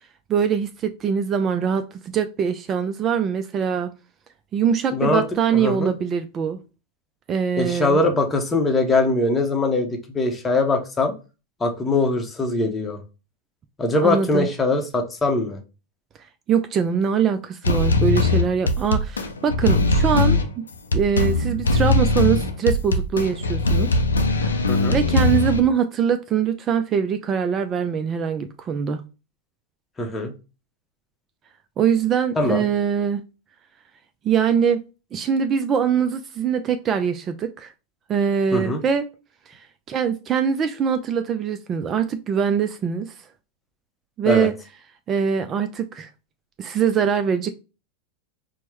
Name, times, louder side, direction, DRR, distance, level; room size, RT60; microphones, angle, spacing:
voice 1, 0.3-3.9 4.5-6.6 7.3-8.0 14.0-14.5 16.5-20.6 20.9-24.0 24.3-29.0 31.8-33.2 34.2-34.8 35.1-37.7 38.1-39.0 39.5-43.1 44.2-44.5 45.1-46.1 46.6-47.5, right 7 dB, 30° right, 0.3 m, -23 dB
voice 2, 4.9-5.2 5.5-5.9 7.6-11.1 11.6-13.0 13.8-15.6 24.7-24.9 30.0-30.3 32.4-32.6 38.5-38.8 44.3-44.5, left 2 dB, 15° left, 0.8 m, -22 dB
sound 1, 17.6-25.6, left 2 dB, 85° left, 0.4 m, -20 dB
4.4 x 2.1 x 3.1 m
hypercardioid pair, 95°, 0 cm